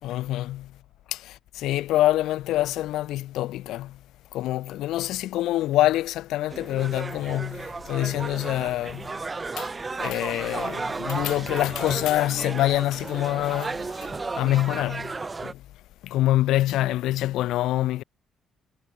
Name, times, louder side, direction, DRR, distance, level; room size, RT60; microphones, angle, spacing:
voice 1, 0.0-0.7 1.1-4.0 4.3-9.1 9.6-9.7 10.0-13.8 14.3-15.1 15.4-15.5 16.0-18.0, left 15 dB, 90° left, 0.4 m, -25 dB
sound 1, 6.5-15.5, right 3 dB, 25° right, 0.7 m, -34 dB
cardioid pair, 90°, 0 cm